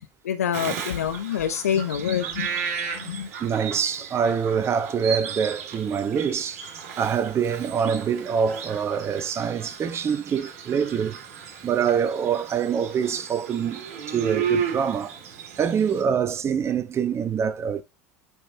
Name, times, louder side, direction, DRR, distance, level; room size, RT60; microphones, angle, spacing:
voice 1, 0.2-2.5 2.9-3.3, left 9 dB, 80° left, 0.8 m, -26 dB
Bird vocalization bird call bird song, 0.5-16.0, right 7 dB, 70° right, 2.4 m, -34 dB
voice 2, 3.0-6.6 7.0-11.2 11.6-15.2 15.6-17.8, right 7 dB, 35° right, 1.1 m, -25 dB
8.2 x 5.5 x 2.9 m
hypercardioid pair, 75°, 8 cm